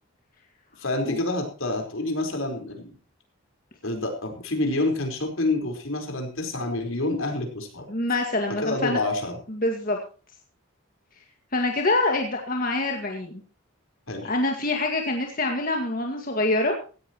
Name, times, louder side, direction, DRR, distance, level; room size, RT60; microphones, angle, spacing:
voice 1, 0.8-2.9 3.8-7.9 8.6-9.4 14.1-14.3, left 2 dB, 70° left, 3 dB, 4.5 m, -28 dB
voice 2, 7.9-9.0 9.5-10.0 11.5-13.4 14.2-16.8, left 2 dB, 40° left, 2 dB, 2.0 m, -25 dB
17.0 x 16.5 x 3.1 m, 0.37 s
head